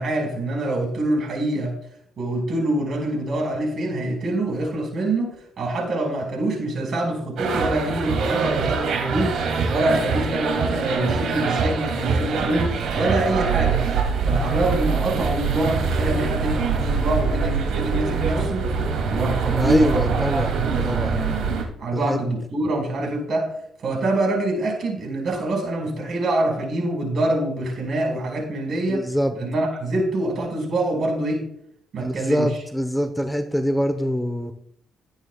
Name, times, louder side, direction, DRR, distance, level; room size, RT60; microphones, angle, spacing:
voice 1, 0.0-1.7 2.2-9.4 9.7-13.9 14.2-18.7 19.1-21.5 21.8-23.5 23.8-29.1 29.3-31.5 31.9-32.6, right 1 dB, 55° right, 1 dB, 5.3 m, -25 dB
sound 1, 7.4-21.6, right 5 dB, 75° right, 2.7 m, -24 dB
voice 2, 19.6-20.5 20.8-21.2 21.9-22.2 28.9-29.3 32.0-34.5, equal, 5° left, 8 dB, 1.0 m, -24 dB
20.0 x 8.9 x 2.4 m, 0.70 s
cardioid pair, 90°, 0 cm